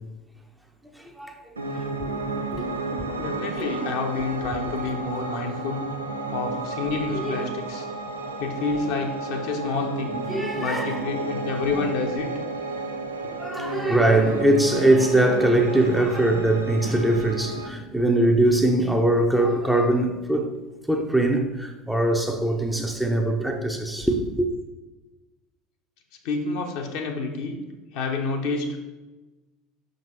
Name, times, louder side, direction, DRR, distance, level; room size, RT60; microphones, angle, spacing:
voice 1, 0.8-1.9 2.5-2.6 3.0-3.1 7.1-7.4 8.3-8.4 10.3-11.3 11.7-11.9 13.4-20.5 20.9-24.5, right 1 dB, 5° right, 0.8 m, -22 dB
Piano, 1.6-17.7, right 3 dB, 80° right, 0.6 m, -32 dB
voice 2, 3.2-5.8 6.3-7.9 8.4-10.2 10.6-12.3 26.2-27.6 27.9-28.8, left 4 dB, 55° left, 1.0 m, -28 dB
5.9 x 5.3 x 4.4 m
figure-of-eight pair, 70°, 0 cm